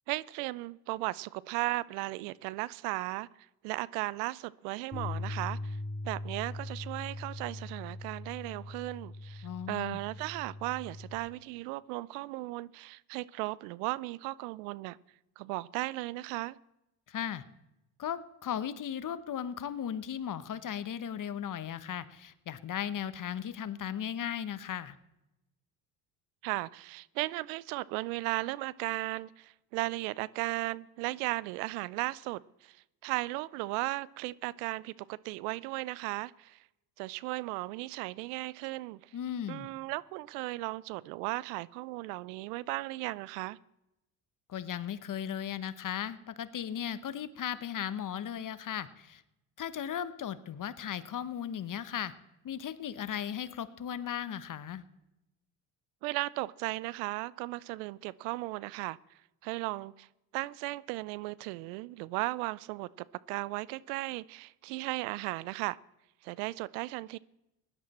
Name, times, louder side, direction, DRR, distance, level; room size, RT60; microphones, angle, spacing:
voice 1, 0.1-3.3 3.6-5.8 6.0-15.0 15.4-16.6 26.4-36.6 37.0-39.1 39.5-43.6 56.0-59.0 59.4-60.1 60.3-65.8 66.2-67.2, right 20 dB, 80° right, 0.6 m, -36 dB
Bass guitar, 4.9-11.2, left 2 dB, 15° left, 3.3 m, -40 dB
voice 2, 9.4-10.0 17.1-17.4 18.0-25.0 39.1-39.7 44.5-49.2 49.6-52.1 52.4-54.8, left 9 dB, 45° left, 1.1 m, -36 dB
16.5 x 11.0 x 4.3 m
hypercardioid pair, 65°, 45 cm